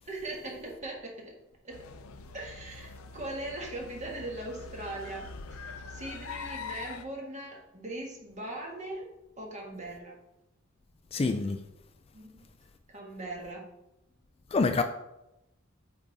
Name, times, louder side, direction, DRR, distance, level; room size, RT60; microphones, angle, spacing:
voice 1, 0.0-1.3 1.6-1.8 2.3-9.0 9.4-10.2 12.1-12.5 12.9-13.6, right 1 dB, 35° right, 1.6 m, -40 dB
sound 1, 1.7-7.0, left 4 dB, 90° left, 0.6 m, -43 dB
voice 2, 11.1-11.6 14.5-14.8, left 3 dB, 30° left, 0.3 m, -26 dB
8.6 x 3.6 x 4.1 m
head